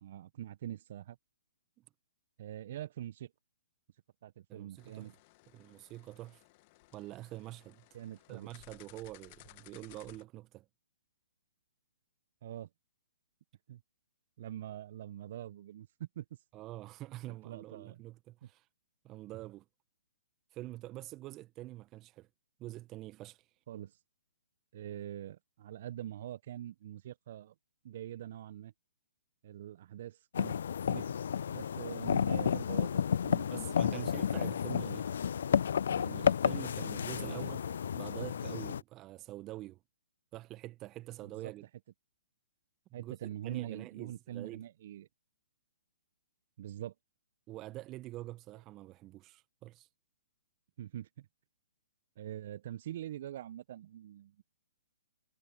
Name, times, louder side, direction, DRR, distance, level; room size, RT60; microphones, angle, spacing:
voice 1, 0.0-1.2 2.4-3.3 4.2-5.1 7.9-8.5 12.4-12.7 13.7-13.8 14.4-16.2 17.4-18.0 23.7-24.0 24.7-27.5 27.8-28.7 29.4-30.6 30.9-31.2 31.5-34.1 37.1-37.6 41.2-41.5 42.9-45.1 46.6-46.9 50.8-51.3 52.2-54.4, right 11 dB, 50° right, 1.3 m, -44 dB
voice 2, 4.5-5.1 5.5-6.4 6.9-7.8 8.3-10.7 16.5-18.6 19.0-19.6 20.5-22.3 22.6-23.4 33.5-35.1 35.9-37.6 37.9-39.8 40.3-41.7 42.9-43.1 43.4-44.6 47.5-49.9, right 17 dB, 25° right, 1.6 m, -46 dB
sound 1, 4.8-10.2, left 24 dB, 35° left, 2.4 m, -59 dB
sound 2, 30.3-38.8, left 8 dB, 60° left, 0.3 m, -32 dB
figure-of-eight pair, 125°, 0 cm